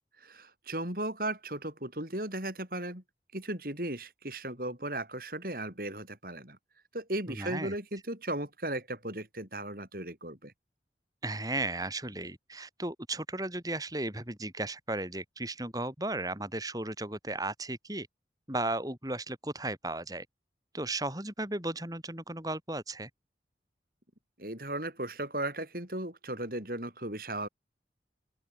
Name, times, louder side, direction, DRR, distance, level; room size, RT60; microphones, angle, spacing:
voice 1, 0.2-3.0 3.3-6.6 6.9-10.5 24.4-27.5, right 1 dB, 50° right, 7.8 m, -36 dB
voice 2, 7.3-7.7 11.2-18.1 18.5-20.3 20.7-23.1, right 2 dB, 20° right, 7.3 m, -35 dB
open air
head